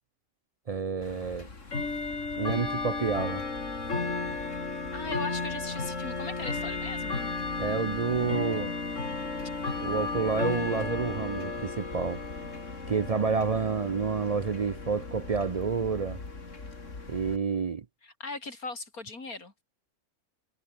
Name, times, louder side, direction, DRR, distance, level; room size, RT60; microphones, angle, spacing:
voice 1, 0.7-1.5 2.4-3.4 7.6-8.7 9.8-12.2 12.9-16.2 17.1-17.9, right 5 dB, 65° right, 0.3 m, -29 dB
Bell / Tick-tock, 1.0-17.4, left 3 dB, 55° left, 3.3 m, -34 dB
voice 2, 4.9-7.2 13.5-13.7 18.0-19.6, left 3 dB, 75° left, 4.4 m, -39 dB
omnidirectional pair, 1.6 m